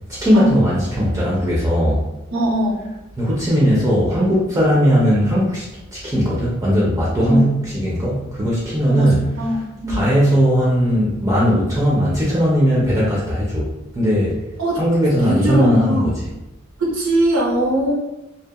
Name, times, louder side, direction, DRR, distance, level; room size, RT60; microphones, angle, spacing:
voice 1, 0.1-2.0 3.2-9.6 9.9-13.7 13.9-14.4 14.7-16.3, equal, 15° right, -7 dB, 0.4 m, -18 dB
voice 2, 2.3-2.8 7.2-7.4 8.9-10.1 14.6-14.8 15.2-16.1 16.8-17.9, right 1 dB, 85° right, -4 dB, 0.8 m, -20 dB
2.7 x 2.1 x 2.3 m, 0.97 s
head